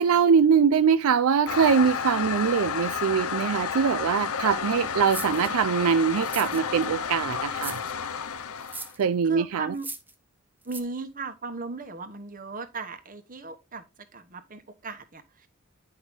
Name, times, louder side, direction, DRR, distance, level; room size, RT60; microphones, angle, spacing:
voice 1, 0.0-7.8 9.0-9.6, right 6 dB, 75° right, 0.4 m, -23 dB
Toilet flush, 1.5-8.9, left 6 dB, 80° left, 0.8 m, -31 dB
sound 1, 5.1-5.5 6.2-6.9 7.6-7.9 8.6-9.0 9.7-10.1 10.7-10.8, right 3 dB, 10° right, 0.7 m, -38 dB
voice 2, 9.2-9.9 10.6-13.8 14.1-15.5, right 3 dB, 40° right, 1.1 m, -37 dB
9.9 x 5.5 x 3.6 m
head